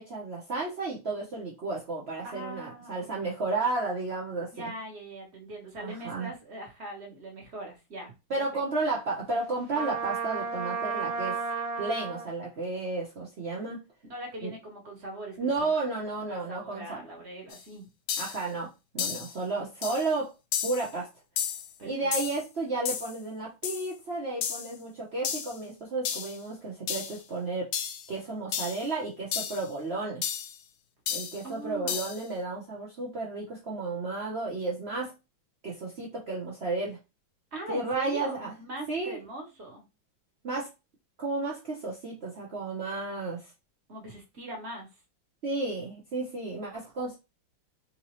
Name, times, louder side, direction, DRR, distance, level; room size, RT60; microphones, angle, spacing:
voice 1, 0.0-4.7 5.8-6.3 8.3-11.4 11.8-13.8 14.4-14.5 15.4-17.0 18.2-18.7 18.9-20.3 20.6-21.1 21.8-27.7 28.1-30.2 31.1-35.1 35.6-37.0 37.7-38.5 38.9-39.2 40.4-40.7 41.2-43.5 45.4-47.2, right 3 dB, 55° right, -4 dB, 0.7 m, -32 dB
voice 2, 2.2-3.3 4.5-8.4 14.1-17.9 21.8-22.1 31.4-32.1 37.5-39.8 43.9-44.9, right 1 dB, 40° right, 0 dB, 1.2 m, -41 dB
Trumpet, 9.7-12.3, right 5 dB, 80° right, 1.4 m, -32 dB
sound 1, 17.5-17.6 18.1-18.4 19.0-19.3 19.8-20.1 20.5-20.9 21.4-21.7 22.1-22.4 22.9-23.2 23.6-23.9 24.4-24.7 25.2-25.6 26.1-26.4 26.9-27.2 27.7-28.1 28.5-28.9 29.3-29.7 30.2-30.6 31.1-31.4 31.9-32.2, left 8 dB, 75° left, 1.1 m, -32 dB
3.9 x 2.7 x 3.0 m, 0.26 s
omnidirectional pair, 2.2 m